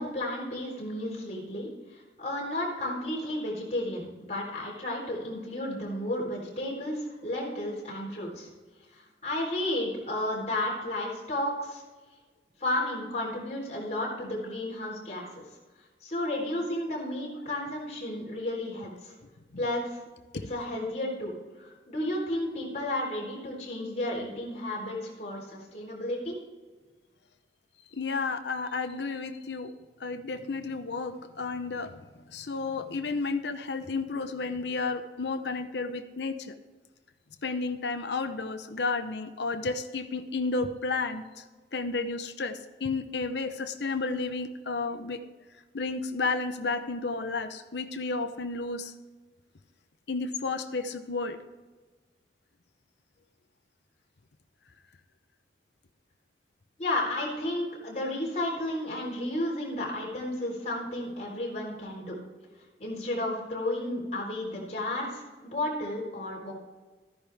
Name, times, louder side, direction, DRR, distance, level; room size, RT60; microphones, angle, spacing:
voice 1, 0.0-8.5 8.9-11.8 12.6-15.4 16.0-19.1 19.6-20.0 20.5-21.3 21.6-26.3 56.8-62.2 62.8-66.5, left 1 dB, 40° left, -4 dB, 3.9 m, -32 dB
voice 2, 27.9-29.7 30.0-36.5 37.4-41.4 41.7-45.2 45.7-48.9 50.1-51.4, left 3 dB, 80° left, 8 dB, 0.8 m, -32 dB
13.5 x 10.0 x 3.5 m, 1.3 s
head